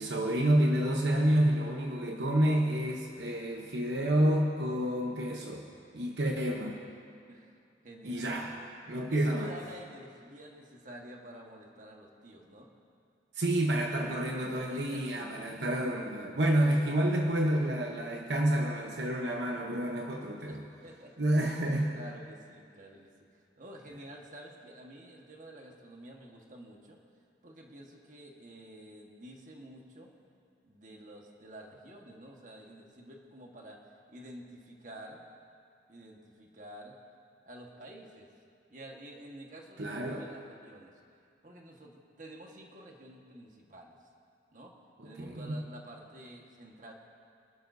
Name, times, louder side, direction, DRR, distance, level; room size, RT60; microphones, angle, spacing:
voice 1, 0.0-5.6 5.9-6.8 8.0-8.5 8.9-9.5 13.3-20.6 21.2-21.9 39.8-40.2 45.0-45.6, right 1 dB, 75° right, 1 dB, 1.0 m, -29 dB
voice 2, 7.3-7.6 7.8-8.3 9.1-12.7 14.0-14.1 14.5-15.7 20.4-27.0 27.4-30.1 30.6-33.8 34.1-35.2 35.9-37.0 37.4-38.3 38.7-40.9 41.4-44.1 44.5-44.7 45.0-46.9, right 1 dB, 45° right, 0 dB, 1.5 m, -50 dB
25.0 x 12.0 x 2.7 m, 2.4 s
head